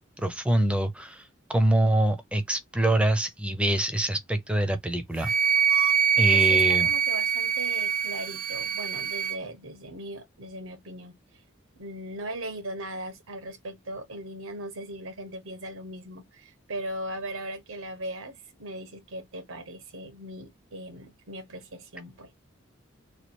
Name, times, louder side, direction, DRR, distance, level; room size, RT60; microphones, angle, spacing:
voice 1, 0.2-1.2 1.5-5.3 6.2-6.9, right 1 dB, 5° right, 0.6 m, -25 dB
Wind instrument woodwind instrument, 5.2-9.4, right 7 dB, 45° right, 0.5 m, -24 dB
voice 2, 6.1-11.4 11.8-22.3, right 1 dB, 85° right, 1.1 m, -39 dB
3.1 x 2.4 x 4.4 m
head